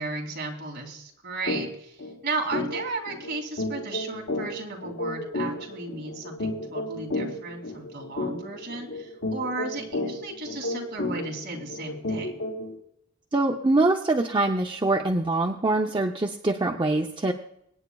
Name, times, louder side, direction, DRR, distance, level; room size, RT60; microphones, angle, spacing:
voice 1, 0.0-12.4, right 3 dB, 45° right, 0 dB, 2.6 m, -35 dB
sound 1, 1.5-1.6 2.0-2.1 2.5-12.7, left 1 dB, 85° left, 4.9 m, -32 dB
voice 2, 13.3-17.3, right 2 dB, 20° right, 2 dB, 0.6 m, -24 dB
25.0 x 9.4 x 2.3 m, 0.75 s
head